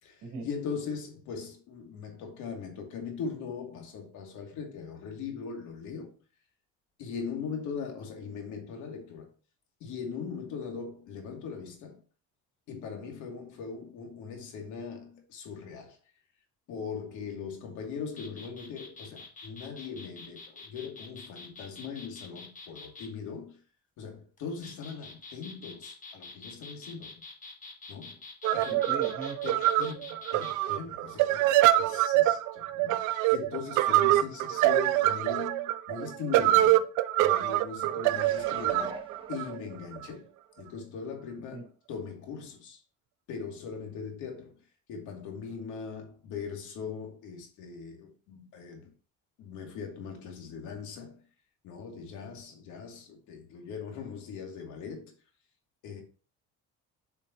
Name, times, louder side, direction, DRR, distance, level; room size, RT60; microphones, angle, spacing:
voice 1, 0.0-6.1 7.0-9.3 9.8-12.0 12.7-16.0 16.7-23.6 24.0-27.2 27.9-28.2 28.5-28.8 29.4-31.5 31.7-36.8 37.2-39.0 39.3-40.3 40.6-42.8 43.3-44.6 44.9-48.9 49.4-51.2 51.6-55.1 55.8-56.0, left 6 dB, 80° left, 2.5 m, -40 dB
sound 1, 18.1-23.1 24.4-30.5, left 3 dB, 25° left, 1.6 m, -47 dB
sound 2, 28.4-40.1, right 14 dB, 90° right, 0.6 m, -25 dB
voice 2, 28.7-29.4 41.5-41.7, right 4 dB, 70° right, 3.0 m, -38 dB
sound 3, 38.0-40.1 40.6-40.7, right 2 dB, 15° right, 1.2 m, -44 dB
9.0 x 5.3 x 2.8 m
cardioid pair, 135°, 30 cm